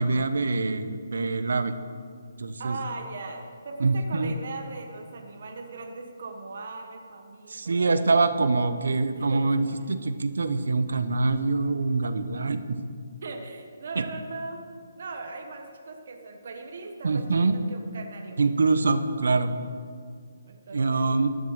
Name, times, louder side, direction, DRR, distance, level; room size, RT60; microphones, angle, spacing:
voice 1, 0.0-1.7 2.4-2.8 3.8-4.3 7.5-12.8 14.0-14.1 17.0-17.6 18.4-19.5 20.7-21.3, right 3 dB, 75° right, 10 dB, 0.9 m, -24 dB
voice 2, 2.6-7.9 9.2-9.5 13.2-14.6 15.0-17.2 17.7-18.4 19.0-19.1 20.5-21.1, right 3 dB, 45° right, 3 dB, 1.2 m, -39 dB
12.0 x 7.3 x 6.6 m, 2.1 s
hypercardioid pair, 175°, 0 cm